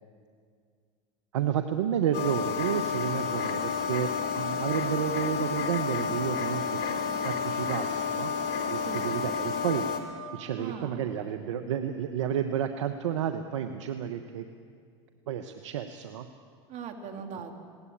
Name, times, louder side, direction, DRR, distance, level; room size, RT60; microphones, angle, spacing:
voice 1, 1.3-6.8 7.2-8.4 8.6-9.9 10.3-14.4 15.3-16.3, right 9 dB, 85° right, 8 dB, 1.0 m, -31 dB
sound 1, 2.1-10.0, left 5 dB, 60° left, 3.3 m, -30 dB
voice 2, 10.6-11.5 16.7-17.6, right 5 dB, 50° right, 4 dB, 2.8 m, -41 dB
20.0 x 18.0 x 8.7 m, 2.1 s
hypercardioid pair, 95°, 15 cm